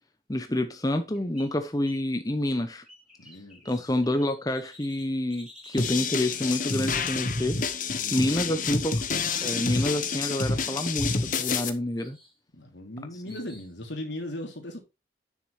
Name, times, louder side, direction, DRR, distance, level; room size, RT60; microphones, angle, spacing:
voice 1, 0.3-2.8 3.6-7.6 8.1-8.9 9.4-12.2 13.3-13.4, left 1 dB, 20° left, 0.9 m, -28 dB
sound 1, 1.0-2.1 2.4-6.0 7.1-8.6 9.4-9.7 10.0-10.6 10.8-11.6 12.0-12.3 13.3-13.8, left 1 dB, 5° right, 3.4 m, -53 dB
voice 2, 3.2-3.6 7.9-9.1 12.5-14.8, left 1 dB, 85° left, 3.2 m, -38 dB
sound 2, 5.8-11.7, left 4 dB, 45° left, 1.0 m, -28 dB
9.7 x 6.9 x 3.3 m
head